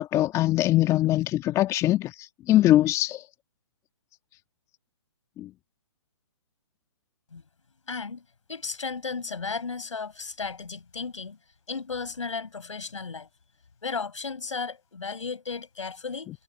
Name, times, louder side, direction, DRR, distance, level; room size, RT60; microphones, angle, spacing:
voice 1, 0.0-2.1 2.5-3.2 5.4-5.5, left 14 dB, 20° left, 1.6 m, -22 dB
voice 2, 7.9-11.4 11.7-13.3 13.8-16.3, left 5 dB, 85° left, 5.7 m, -34 dB
hypercardioid pair, 140°, 16 cm